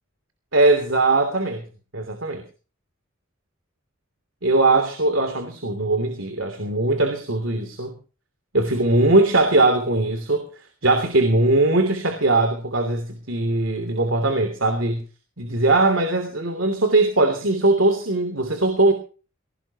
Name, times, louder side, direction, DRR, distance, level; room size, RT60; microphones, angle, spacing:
voice 1, 0.5-1.6 1.9-2.4 4.4-7.9 8.5-10.4 10.8-15.0 15.4-18.9, right 2 dB, 70° right, 7 dB, 3.1 m, -20 dB
20.0 x 18.5 x 3.0 m, 0.37 s
head